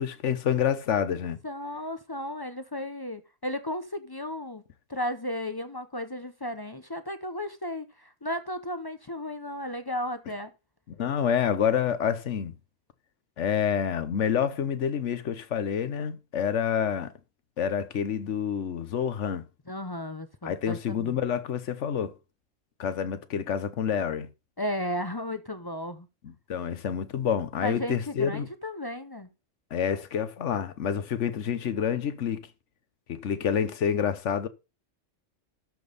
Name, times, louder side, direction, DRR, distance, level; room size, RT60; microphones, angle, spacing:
voice 1, 0.0-1.4 11.0-12.5 13.4-17.1 17.6-19.4 20.4-22.1 22.8-24.3 26.2-28.5 29.7-32.5 33.1-34.5, left 8 dB, 70° left, 1.2 m, -28 dB
voice 2, 1.4-4.6 4.9-10.5 19.7-21.2 24.6-26.1 27.6-29.3, left 1 dB, 25° left, 0.6 m, -34 dB
12.5 x 5.3 x 4.0 m
omnidirectional pair, 1.3 m